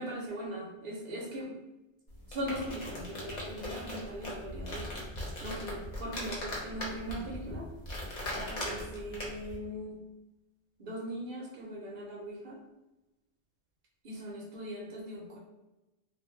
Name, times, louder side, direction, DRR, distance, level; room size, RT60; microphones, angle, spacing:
voice 1, 0.0-1.5 2.3-4.9 5.4-7.7 8.3-10.0 10.8-12.6 14.0-15.4, equal, 60° right, -3 dB, 0.7 m, -40 dB
sound 1, 2.1-9.6, left 1 dB, 45° left, 0.7 m, -39 dB
2.4 x 2.1 x 3.0 m, 1.0 s
omnidirectional pair, 1.1 m